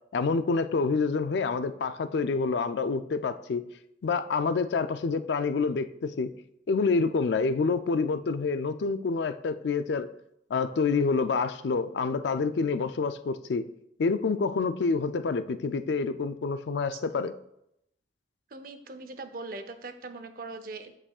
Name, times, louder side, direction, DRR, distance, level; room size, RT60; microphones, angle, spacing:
voice 1, 0.1-3.6 4.0-6.3 6.7-10.1 10.5-13.7 14.0-17.3, left 4 dB, 75° left, 11 dB, 0.4 m, -27 dB
voice 2, 18.5-21.0, right 3 dB, 50° right, 9 dB, 0.6 m, -41 dB
8.7 x 6.6 x 2.4 m, 0.78 s
head